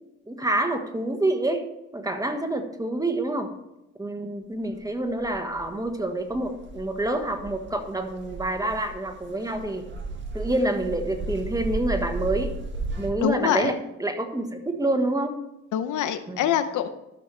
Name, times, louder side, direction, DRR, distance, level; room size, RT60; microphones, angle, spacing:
voice 1, 0.2-1.6 1.9-3.5 4.0-9.9 10.3-12.5 13.0-15.4 16.3-16.5, right 1 dB, 10° right, 6 dB, 1.4 m, -27 dB
sound 1, 4.7-13.1, right 2 dB, 40° right, 1.7 m, -35 dB
voice 2, 13.2-13.7 15.7-16.9, left 10 dB, 80° left, 10 dB, 0.8 m, -24 dB
13.5 x 6.2 x 3.3 m, 0.93 s
cardioid pair, 90°, 30 cm